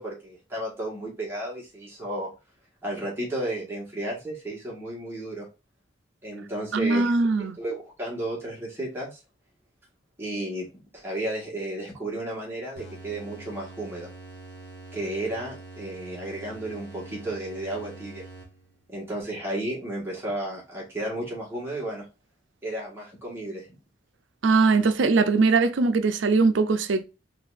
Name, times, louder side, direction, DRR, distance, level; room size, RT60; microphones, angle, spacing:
voice 1, 0.0-2.3 2.8-5.5 6.2-9.2 10.2-10.7 10.9-14.1 14.9-18.2 18.9-22.0 22.6-23.7, right 1 dB, 15° right, 1.6 m, -33 dB
voice 2, 6.7-7.6 24.4-27.0, right 4 dB, 85° right, 0.5 m, -21 dB
sound 1, 12.7-18.9, right 2 dB, 60° left, 1.2 m, -45 dB
4.0 x 3.3 x 2.5 m
head